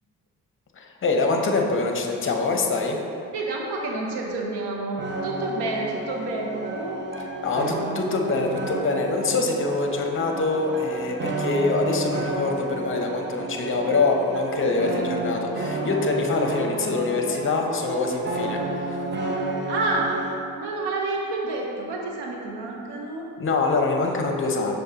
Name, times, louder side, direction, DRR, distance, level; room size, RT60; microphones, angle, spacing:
voice 1, 0.8-3.0 7.4-19.0 23.4-24.8, left 3 dB, 30° left, 2 dB, 0.6 m, -24 dB
voice 2, 3.3-7.0 16.8-17.0 19.7-20.2 20.6-23.3, right 2 dB, 80° right, -1 dB, 0.7 m, -29 dB
sound 1, 5.0-20.4, right 2 dB, 25° right, 0.6 m, -31 dB
6.4 x 2.1 x 2.7 m, 2.6 s
supercardioid pair, 45°, 41 cm